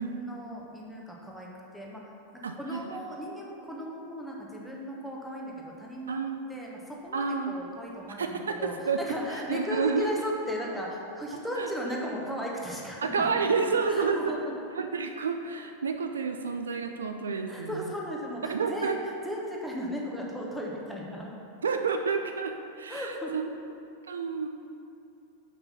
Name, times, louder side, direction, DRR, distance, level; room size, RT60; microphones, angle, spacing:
voice 1, 0.0-1.5 1.7-2.0 2.6-6.2 6.5-13.4 13.9-14.6 17.5-21.3 22.9-23.4, equal, ahead, -3 dB, 1.2 m, -36 dB
voice 2, 2.4-3.0 6.1-6.4 7.1-7.6 8.2-10.1 11.6-11.7 13.0-14.3 14.7-17.9 18.5-19.0 21.6-23.4 24.1-24.5, right 5 dB, 70° right, 5 dB, 0.4 m, -30 dB
6.1 x 5.5 x 5.7 m, 2.7 s
figure-of-eight pair, 90°, 0 cm